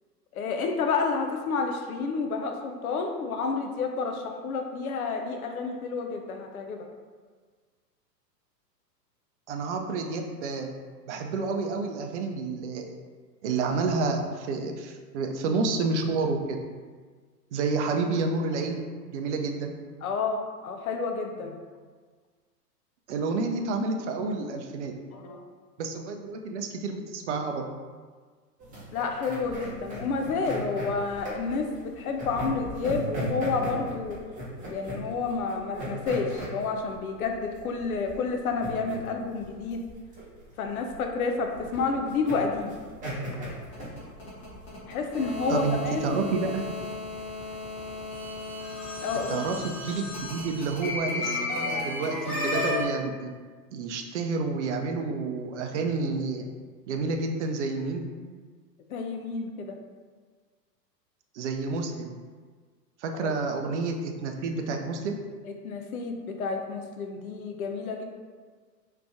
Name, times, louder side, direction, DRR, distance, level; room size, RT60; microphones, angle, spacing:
voice 1, 0.3-6.9 20.0-21.6 25.1-25.4 28.9-34.2 34.7-39.8 40.6-42.7 44.8-46.2 49.0-49.4 58.9-59.8 63.1-63.3 65.4-68.0, left 4 dB, 60° left, 4 dB, 0.6 m, -30 dB
voice 2, 9.5-10.7 11.1-12.9 13.4-16.6 17.5-18.8 19.1-19.7 23.1-24.9 25.8-27.7 45.5-46.7 49.3-53.3 53.7-56.5 56.9-58.1 61.3-62.2 63.0-65.2, right 4 dB, 45° right, 4 dB, 0.5 m, -29 dB
sound 1, 28.6-44.8, right 1 dB, 15° right, 1.0 m, -38 dB
sound 2, 43.3-52.9, left 2 dB, 25° left, 1.0 m, -34 dB
3.1 x 2.5 x 3.4 m, 1.5 s
figure-of-eight pair, 105°, 49 cm